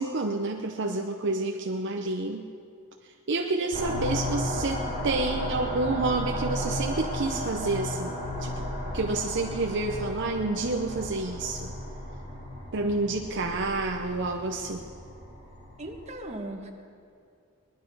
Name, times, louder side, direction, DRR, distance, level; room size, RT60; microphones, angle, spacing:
voice 1, 0.0-2.5 3.3-8.6 8.9-11.7 12.7-14.9, right 3 dB, 55° right, 2 dB, 0.7 m, -29 dB
sound 1, 3.7-16.1, left 1 dB, 45° left, 4.5 m, -34 dB
voice 2, 15.8-16.7, right 1 dB, 30° right, 2 dB, 1.4 m, -37 dB
19.5 x 11.5 x 5.5 m, 2.4 s
head